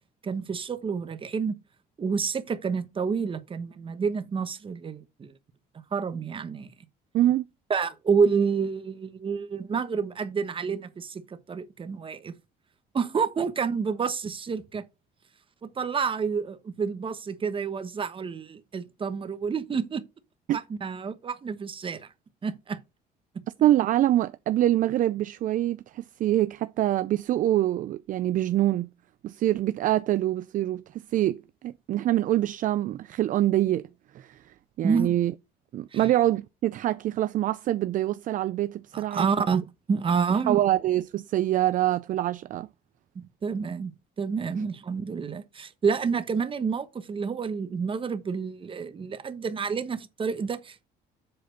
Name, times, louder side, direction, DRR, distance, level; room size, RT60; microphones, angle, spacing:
voice 1, 0.2-1.6 2.0-5.3 5.9-6.7 7.7-12.3 12.9-14.8 15.6-20.0 20.5-22.1 22.4-22.8 34.8-35.1 35.9-36.1 38.9-39.6 39.9-40.6 43.1-50.9, right 5 dB, 30° right, 1.0 m, -29 dB
voice 2, 7.1-7.4 20.5-20.6 23.6-28.9 29.2-33.9 34.1-34.4 34.8-35.3 35.7-39.6 40.5-42.7, right 13 dB, 50° right, 0.4 m, -25 dB
7.8 x 4.2 x 5.0 m
cardioid pair, 110°, 17 cm